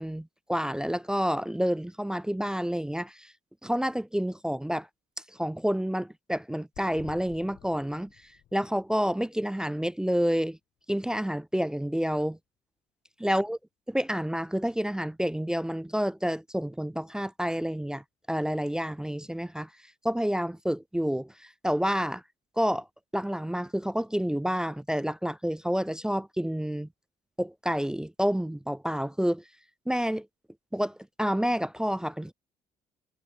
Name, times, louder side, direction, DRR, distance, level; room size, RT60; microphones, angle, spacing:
voice 1, 0.0-3.3 3.6-4.9 5.3-10.6 10.9-12.4 13.2-13.6 13.9-19.7 20.0-22.2 22.6-22.9 23.1-26.9 27.4-29.4 29.9-30.3 30.7-32.3, equal, 5° right, 0.3 m, -29 dB
sound 1, 6.7-10.5 10.8-10.9 11.1-11.2, left 12 dB, 70° left, 4.8 m, -53 dB
cardioid pair, 105°, 15 cm